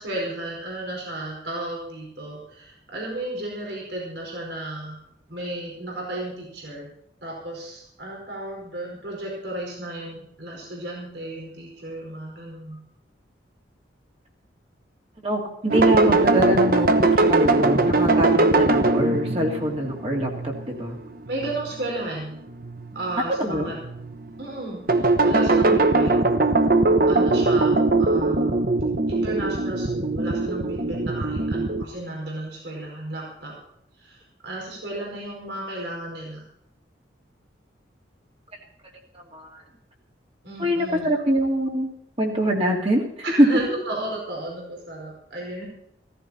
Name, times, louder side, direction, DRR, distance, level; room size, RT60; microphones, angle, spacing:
voice 1, 0.0-5.0 5.3-6.9 7.2-12.8 21.3-22.4 22.9-23.8 24.4-26.1 27.1-28.6 29.1-33.5 34.0-36.4 40.4-41.1 43.2-45.6, right 1 dB, 70° right, -2 dB, 4.8 m, -33 dB
voice 2, 15.2-21.0 23.4-23.7 39.1-39.6 40.6-41.9 42.2-43.0 43.4-43.5, equal, 30° right, 0 dB, 2.6 m, -24 dB
sound 1, 15.7-21.9 22.5-23.1 23.7-24.3 24.9-31.8, right 2 dB, 50° right, 1.1 m, -21 dB
16.0 x 14.5 x 4.3 m, 0.75 s
head